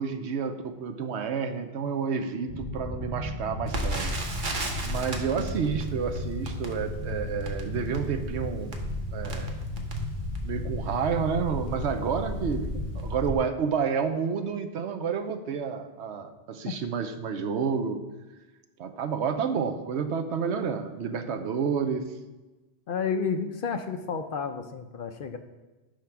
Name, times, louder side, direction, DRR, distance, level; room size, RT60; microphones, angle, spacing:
voice 1, 0.0-4.2 4.8-8.7 9.1-9.5 10.4-18.0 18.8-22.1, right 6 dB, 80° right, 8 dB, 1.0 m, -30 dB
sound 1, 2.5-13.4, left 1 dB, 25° right, 2.4 m, -34 dB
Crackle, 3.7-10.6 11.2-11.3 11.7-11.9 12.5-12.7 13.0-13.1, right 1 dB, 50° right, 1.1 m, -36 dB
voice 2, 4.5-4.8 12.7-12.8 16.7-16.8 22.9-25.4, left 5 dB, 60° left, 7 dB, 0.7 m, -31 dB
10.0 x 3.7 x 5.8 m, 1.1 s
omnidirectional pair, 1.1 m